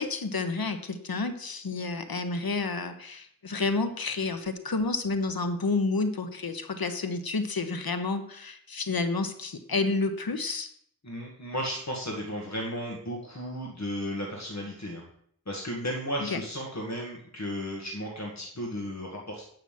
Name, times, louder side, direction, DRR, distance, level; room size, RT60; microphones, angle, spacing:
voice 1, 0.0-10.7 16.2-16.4, left 3 dB, 80° left, 8 dB, 1.1 m, -30 dB
voice 2, 11.0-15.0 15.5-19.4, equal, 50° left, -1 dB, 1.8 m, -34 dB
9.0 x 5.9 x 7.5 m, 0.66 s
wide cardioid pair, 65°, 35 cm